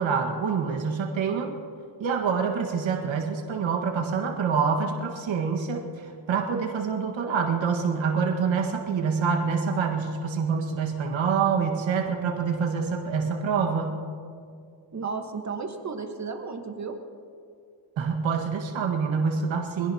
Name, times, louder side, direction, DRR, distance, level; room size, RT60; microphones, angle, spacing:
voice 1, 0.0-1.5 2.0-14.0 18.0-19.9, right 5 dB, 70° right, 2 dB, 1.7 m, -26 dB
voice 2, 14.9-17.0, right 4 dB, 35° right, 4 dB, 1.4 m, -33 dB
25.0 x 17.5 x 2.9 m, 2.3 s
cardioid pair, 125°, 48 cm